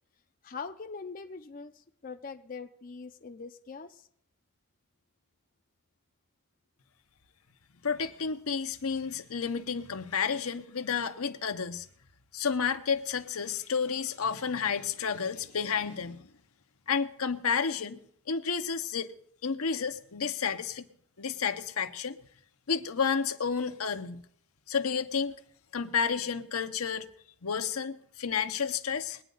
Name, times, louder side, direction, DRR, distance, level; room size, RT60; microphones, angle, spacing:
voice 1, 0.4-4.1, left 5 dB, 40° left, 0.5 m, -42 dB
voice 2, 7.8-11.9 12.3-16.3 16.9-18.0 18.3-19.1 19.4-20.9 21.2-22.2 22.7-24.2 24.7-25.3 25.7-27.1 27.4-29.2, left 6 dB, 85° left, 0.9 m, -31 dB
21.5 x 9.3 x 3.9 m
head